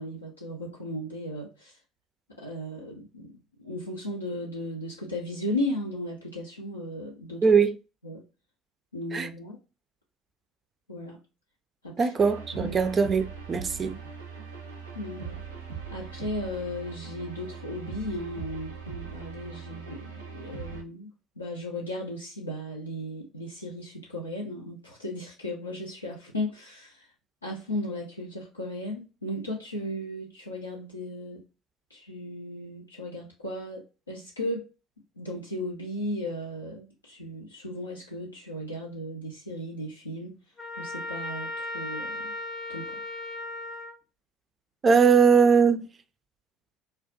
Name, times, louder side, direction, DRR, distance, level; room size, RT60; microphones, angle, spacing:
voice 1, 0.0-1.8 2.4-7.4 8.0-8.2 8.9-9.6 10.9-11.2 11.8-12.1 12.6-12.8 14.9-15.4 15.9-21.1 21.4-27.1 27.4-31.4 31.9-34.6 35.2-40.4 40.8-42.3 42.7-43.0, left 1 dB, 90° left, 0.4 m, -36 dB
voice 2, 7.4-7.8 9.1-9.3 12.0-14.0 44.8-45.9, right 5 dB, 35° right, 0.3 m, -21 dB
sound 1, 12.2-20.8, right 6 dB, 85° right, 0.5 m, -40 dB
Trumpet, 40.6-44.0, left 1 dB, 30° left, 0.5 m, -36 dB
2.4 x 2.1 x 2.5 m
figure-of-eight pair, 60°, 0 cm